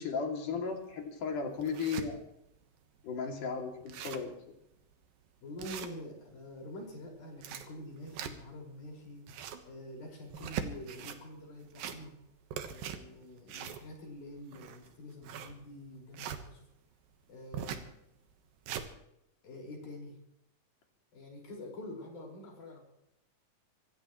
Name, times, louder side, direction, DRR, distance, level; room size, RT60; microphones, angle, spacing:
voice 1, 0.0-2.2 3.0-4.3, left 5 dB, 60° left, 2 dB, 4.1 m, -35 dB
sound 1, 0.7-0.8 1.3-2.1 2.6-2.7 3.0-3.1 3.5-3.6 3.8-4.4 4.8-4.9 5.6-6.4 7.2-8.6 9.1-9.7 10.2-11.2 11.6-12.2 12.5-16.4 17.5-17.9 18.3-18.9, right 9 dB, 90° right, 3.1 m, -41 dB
voice 2, 5.4-9.2 9.6-12.2 12.6-16.6 17.3-17.9 19.4-20.2 21.1-22.8, left 1 dB, 85° left, 0 dB, 7.1 m, -46 dB
26.0 x 14.5 x 3.2 m, 0.80 s
omnidirectional pair, 4.1 m